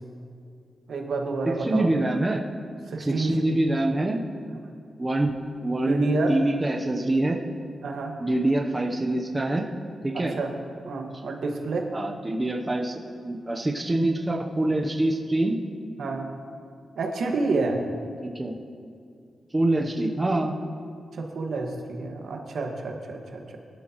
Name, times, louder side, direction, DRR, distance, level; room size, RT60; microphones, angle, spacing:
voice 1, 0.9-1.9 2.9-3.6 5.8-6.4 7.8-8.1 10.1-10.5 10.8-11.9 16.0-16.3 16.9-17.8 21.1-23.6, right 3 dB, 75° right, 2 dB, 1.7 m, -29 dB
voice 2, 1.6-2.4 3.0-4.2 5.0-5.4 5.6-7.4 8.2-9.7 10.0-10.3 11.9-15.6 18.2-18.5 19.5-20.5, right 1 dB, 20° right, 1 dB, 0.8 m, -25 dB
22.5 x 12.0 x 3.1 m, 2.3 s
wide cardioid pair, 145°, 0 cm